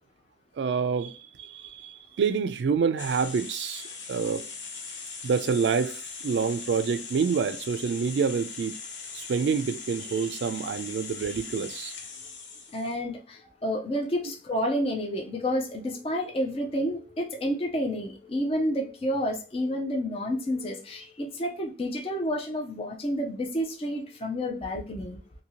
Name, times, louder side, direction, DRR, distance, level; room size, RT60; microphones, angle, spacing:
voice 1, 0.6-4.5 5.2-8.8 9.1-11.9, right 6 dB, 70° right, 0.3 m, -27 dB
sound 1, 3.0-13.0, left 5 dB, 75° left, 0.6 m, -40 dB
voice 2, 12.7-25.2, equal, 30° left, 0.5 m, -30 dB
2.7 x 2.7 x 2.8 m
head